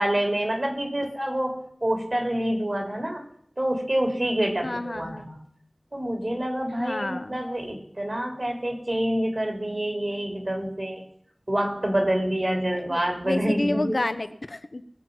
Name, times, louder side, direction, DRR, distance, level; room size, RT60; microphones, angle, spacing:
voice 1, 0.0-3.2 3.6-5.4 5.9-11.0 11.5-13.9, right 1 dB, 45° right, 3 dB, 3.5 m, -27 dB
voice 2, 4.6-5.3 6.8-7.4 12.7-14.8, left 2 dB, 60° left, 8 dB, 0.9 m, -30 dB
19.5 x 7.4 x 5.5 m, 0.64 s
wide cardioid pair, 50°, 0 cm